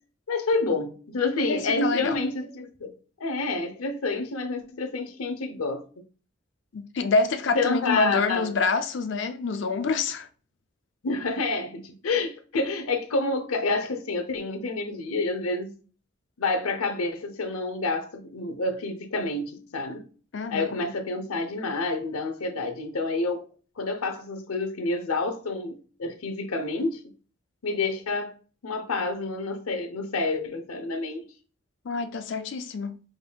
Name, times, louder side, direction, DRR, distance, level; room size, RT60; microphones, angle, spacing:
voice 1, 0.3-2.9 3.2-5.8 7.5-8.5 11.0-15.7 16.4-20.0 20.5-23.5 23.8-27.1 27.6-28.3 28.6-31.2, left 3 dB, 90° left, 0.7 m, -28 dB
voice 2, 1.5-2.2 6.7-10.3 20.3-20.8 31.8-33.0, left 4 dB, 55° left, 0.4 m, -26 dB
5.0 x 3.5 x 2.2 m
head